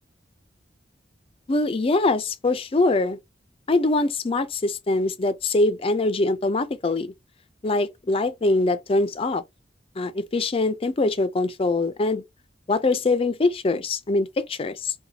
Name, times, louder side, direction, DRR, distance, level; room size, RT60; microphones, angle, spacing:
voice 1, 1.5-3.2 3.7-7.1 7.6-9.4 10.0-12.2 12.7-14.9, left 2 dB, 30° left, 0.4 m, -23 dB
4.1 x 2.3 x 2.8 m
head